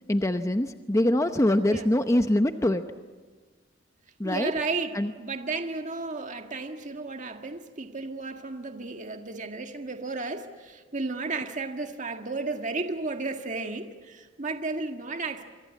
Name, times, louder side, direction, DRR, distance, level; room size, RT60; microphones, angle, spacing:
voice 1, 0.1-2.8 4.2-4.5 4.9-5.1, left 1 dB, 15° left, 8 dB, 0.8 m, -24 dB
voice 2, 4.2-15.4, right 3 dB, 45° right, 5 dB, 1.8 m, -33 dB
26.0 x 24.5 x 8.5 m, 1.4 s
head